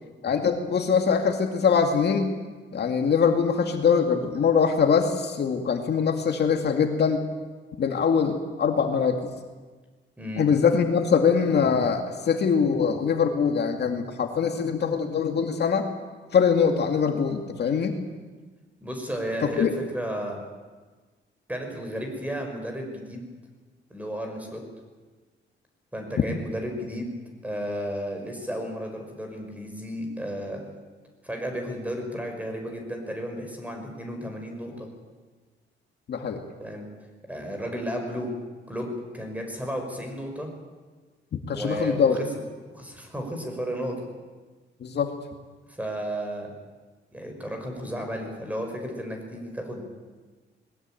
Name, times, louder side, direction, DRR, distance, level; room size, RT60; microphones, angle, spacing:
voice 1, 0.2-2.3 2.7-7.2 7.8-9.3 10.4-15.9 16.3-18.0 19.6-19.7 36.1-36.4 41.5-42.2 44.8-45.1, left 6 dB, 55° left, 4 dB, 2.1 m, -23 dB
voice 2, 10.2-10.5 18.8-19.7 19.9-20.4 21.5-23.3 23.9-24.6 25.9-27.1 27.4-30.6 31.2-34.9 36.6-36.9 37.3-38.3 38.7-40.5 41.5-42.3 42.7-44.0 45.8-46.5 47.1-49.9, equal, 5° right, 3 dB, 5.5 m, -33 dB
20.5 x 20.5 x 9.1 m, 1.4 s
cardioid pair, 140°, 20 cm